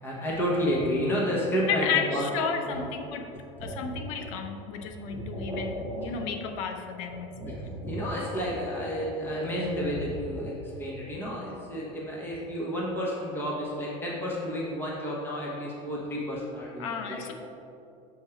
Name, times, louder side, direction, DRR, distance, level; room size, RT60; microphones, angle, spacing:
voice 1, 0.0-2.3 2.6-2.8 3.6-4.0 5.0-6.2 7.1-17.2, equal, 15° left, -5 dB, 1.2 m, -31 dB
voice 2, 1.7-3.3 3.6-7.5 16.8-17.3, left 6 dB, 90° left, 6 dB, 0.7 m, -32 dB
7.2 x 3.7 x 4.5 m, 2.7 s
cardioid pair, 150°, 16 cm